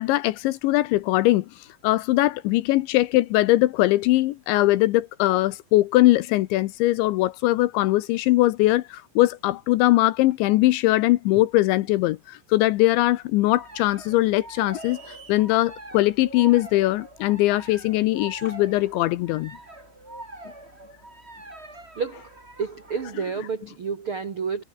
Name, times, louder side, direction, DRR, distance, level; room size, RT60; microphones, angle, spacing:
voice 1, 0.0-1.5 1.8-19.5, left 17 dB, 80° left, 2.9 m, -21 dB
sound 1, 13.5-23.2, right 1 dB, 10° right, 5.5 m, -43 dB
sound 2, 14.7-15.5, right 6 dB, 45° right, 5.6 m, -48 dB
voice 2, 21.9-24.6, right 5 dB, 75° right, 1.2 m, -30 dB
omnidirectional pair, 5.7 m